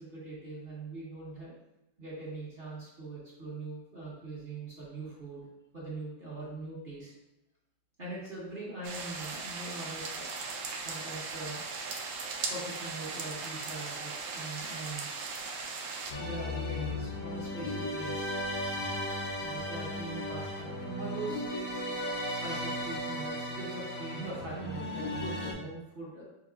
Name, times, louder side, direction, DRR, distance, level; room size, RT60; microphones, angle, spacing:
voice 1, 0.0-1.5 2.0-5.5 5.7-7.1 8.0-10.3 10.8-11.6 12.4-15.1 16.1-18.3 19.4-21.4 22.3-26.2, right 2 dB, 30° right, -8 dB, 1.3 m, -42 dB
Soft rain, 8.8-16.1, right 4 dB, 80° right, 1.3 m, -38 dB
sound 1, 16.1-25.5, left 1 dB, 60° left, 0.7 m, -35 dB
6.6 x 2.8 x 2.4 m, 0.93 s
omnidirectional pair, 2.1 m